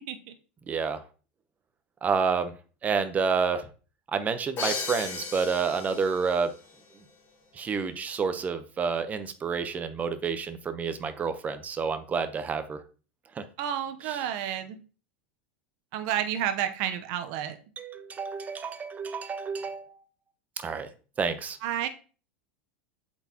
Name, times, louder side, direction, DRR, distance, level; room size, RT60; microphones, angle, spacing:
voice 1, 0.7-1.0 2.0-2.5 2.8-3.7 4.1-6.5 7.5-12.8 13.4-13.5 14.0-14.3 17.8-19.9 20.6-20.9 21.2-21.6, right 5 dB, 25° right, 10 dB, 0.9 m, -29 dB
Crash cymbal, 4.6-6.4, left 4 dB, 40° left, 2.5 m, -35 dB
voice 2, 13.6-14.8 15.9-17.6 21.6-21.9, right 10 dB, 60° right, 8 dB, 0.9 m, -30 dB
7.9 x 4.4 x 3.0 m, 0.37 s
hypercardioid pair, 100°, 6 cm